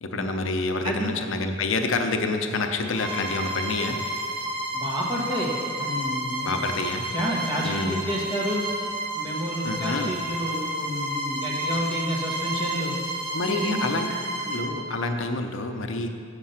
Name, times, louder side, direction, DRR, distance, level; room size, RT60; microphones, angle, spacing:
voice 1, 0.0-4.0 6.4-7.1 7.6-8.0 9.6-10.1 13.3-14.1 14.5-16.1, left 3 dB, 70° left, 5 dB, 0.6 m, -28 dB
voice 2, 0.8-1.2 4.7-6.6 7.1-8.6 9.1-12.9 13.5-14.2, equal, 25° right, -3 dB, 1.5 m, -30 dB
Bowed string instrument, 2.9-14.7, right 1 dB, 75° right, 2.1 m, -31 dB
7.4 x 6.7 x 5.7 m, 2.3 s
head